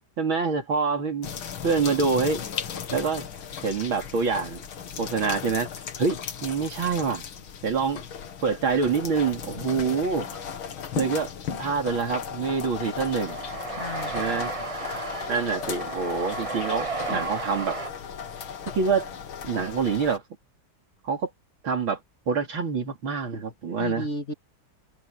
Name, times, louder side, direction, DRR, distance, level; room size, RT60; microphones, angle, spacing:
voice 1, 0.2-1.3 1.6-2.4 2.9-3.3 3.6-4.7 5.0-5.7 6.0-7.2 7.6-8.0 8.4-10.4 11.0-11.3 11.6-13.4 14.1-14.5 15.3-17.8 18.7-19.1 19.4-20.2 21.0-21.3 21.6-22.0 22.3-24.1, right 5 dB, 90° right, 3.8 m, -26 dB
sound 1, 1.2-20.2, left 7 dB, 90° left, 2.4 m, -36 dB
sound 2, 12.7-17.9, right 4 dB, 35° right, 0.5 m, -34 dB
voice 2, 13.7-14.5 17.1-17.3 23.8-24.3, left 2 dB, 35° left, 3.0 m, -34 dB
omnidirectional pair, 2.2 m